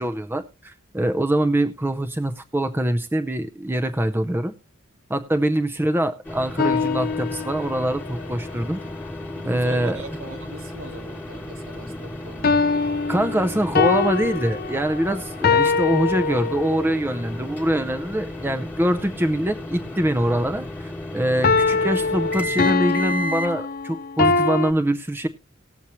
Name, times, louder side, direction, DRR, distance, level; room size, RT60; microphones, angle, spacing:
voice 1, 0.0-4.5 5.1-8.8 9.4-10.0 13.1-25.3, right 1 dB, 10° right, 0.6 m, -24 dB
sound 1, 6.2-23.5, left 1 dB, 10° left, 1.4 m, -34 dB
sound 2, 6.6-8.0 12.4-17.0 21.4-24.7, left 4 dB, 45° left, 0.6 m, -23 dB
voice 2, 9.3-12.7 18.4-18.8, right 1 dB, 70° right, 1.4 m, -40 dB
19.0 x 7.2 x 3.0 m
head